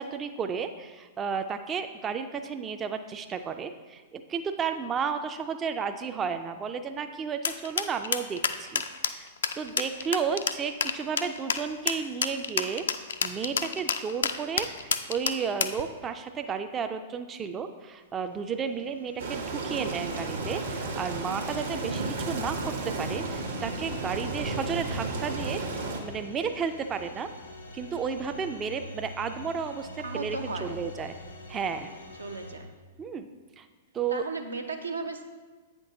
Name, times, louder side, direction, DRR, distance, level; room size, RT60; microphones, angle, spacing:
voice 1, 0.0-9.3 9.6-12.9 13.2-27.3 27.7-31.1 31.5-31.9 33.0-33.3 33.6-33.7 33.9-34.2, right 6 dB, 20° right, 8 dB, 0.3 m, -33 dB
sound 1, 7.4-15.8, left 7 dB, 70° left, 0.3 m, -29 dB
sound 2, 18.2-32.5, left 1 dB, 85° left, 1.0 m, -45 dB
sound 3, 19.2-26.0, right 3 dB, 70° right, 0.9 m, -33 dB
voice 2, 30.0-30.8 32.2-32.7 34.1-35.2, right 4 dB, 85° right, 5 dB, 0.6 m, -35 dB
8.2 x 5.9 x 2.6 m, 1.3 s
figure-of-eight pair, 105°, 0 cm